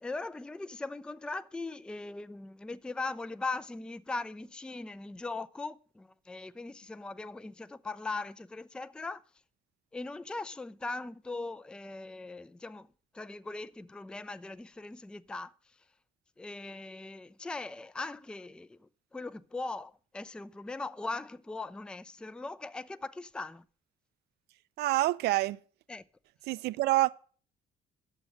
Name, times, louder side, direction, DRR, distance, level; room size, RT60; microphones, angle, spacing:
voice 1, 0.0-9.2 9.9-12.9 13.1-15.5 16.4-18.8 19.1-23.6 25.9-26.0, left 3 dB, 5° left, 0.4 m, -40 dB
voice 2, 24.8-25.6 26.5-27.1, right 17 dB, 75° right, 0.5 m, -27 dB
9.8 x 7.0 x 6.3 m
cardioid pair, 110°, 17 cm